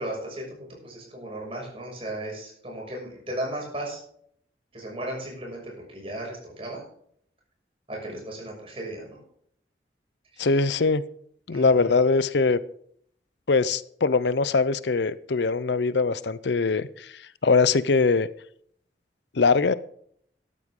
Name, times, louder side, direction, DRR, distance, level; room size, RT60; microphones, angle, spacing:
voice 1, 0.0-4.0 4.7-6.8 7.9-9.2 10.3-10.5 11.5-11.9, right 1 dB, 30° right, -1 dB, 6.3 m, -35 dB
voice 2, 10.4-11.0 11.5-12.6 13.5-18.3 19.3-19.7, left 4 dB, 80° left, 17 dB, 0.6 m, -22 dB
13.5 x 12.0 x 3.7 m, 0.65 s
head